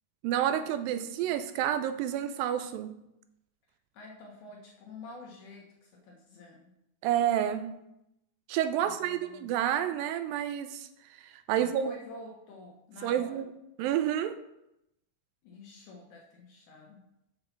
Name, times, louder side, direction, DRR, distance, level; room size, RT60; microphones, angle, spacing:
voice 1, 0.2-3.0 7.0-7.8 8.5-10.9 11.2-11.9 13.0-13.5 13.8-14.4, right 10 dB, 85° right, 10 dB, 2.4 m, -29 dB
voice 2, 3.9-6.7 8.8-9.6 11.5-13.4 15.4-17.0, left 2 dB, 65° left, 0 dB, 2.3 m, -49 dB
6.8 x 5.6 x 5.8 m, 0.84 s
omnidirectional pair, 4.0 m